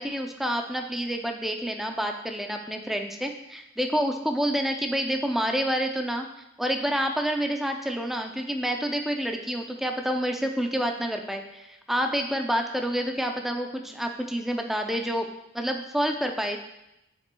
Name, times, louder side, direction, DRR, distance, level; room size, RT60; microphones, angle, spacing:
voice 1, 0.0-6.3 6.6-15.3 15.5-16.6, equal, ahead, 3 dB, 0.4 m, -28 dB
7.4 x 6.0 x 2.2 m, 0.88 s
head